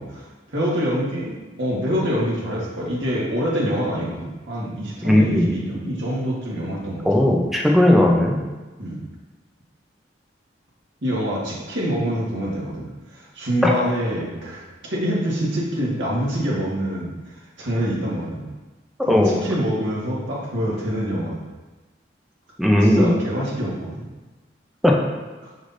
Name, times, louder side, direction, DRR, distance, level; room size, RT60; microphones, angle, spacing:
voice 1, 0.0-7.3 8.8-9.0 11.0-14.6 14.9-18.5 19.1-21.4 22.8-24.1 25.4-25.5, equal, 85° right, -5 dB, 1.6 m, -26 dB
voice 2, 5.0-5.5 7.0-8.4 13.6-13.7 19.1-19.4 22.6-23.1 24.8-24.9, left 1 dB, ahead, -1 dB, 0.6 m, -16 dB
6.3 x 5.8 x 2.7 m, 1.2 s
head